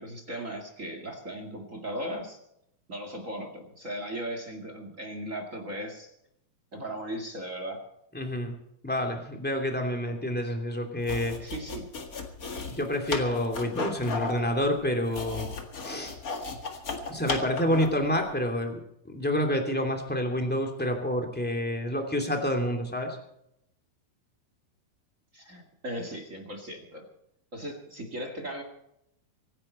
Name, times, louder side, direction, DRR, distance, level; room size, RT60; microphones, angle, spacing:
voice 1, 0.0-2.4 2.9-6.1 6.7-7.8 11.4-11.9 25.3-27.0 27.5-28.6, equal, 30° right, 4 dB, 1.4 m, -37 dB
voice 2, 8.1-8.5 8.8-11.3 12.7-15.5 15.8-16.1 17.1-18.8 19.1-23.2, left 1 dB, 5° left, 3 dB, 1.7 m, -28 dB
sound 1, 11.0-18.0, left 4 dB, 45° left, 1.1 m, -35 dB
25.0 x 10.5 x 4.4 m, 0.78 s
omnidirectional pair, 4.6 m